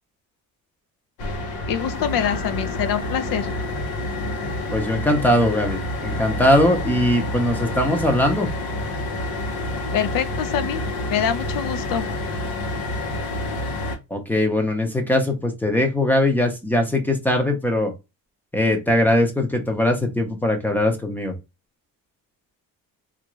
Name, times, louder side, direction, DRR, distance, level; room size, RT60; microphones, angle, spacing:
sound 1, 1.2-14.0, left 1 dB, 90° left, 0.9 m, -28 dB
voice 1, 1.7-3.5 9.9-10.8 11.1-12.1, left 9 dB, 70° left, 0.6 m, -25 dB
voice 2, 4.7-8.5 14.1-17.9 18.5-21.3, left 1 dB, 5° left, 0.6 m, -20 dB
3.5 x 2.5 x 3.0 m
cardioid pair, 170°, 36 cm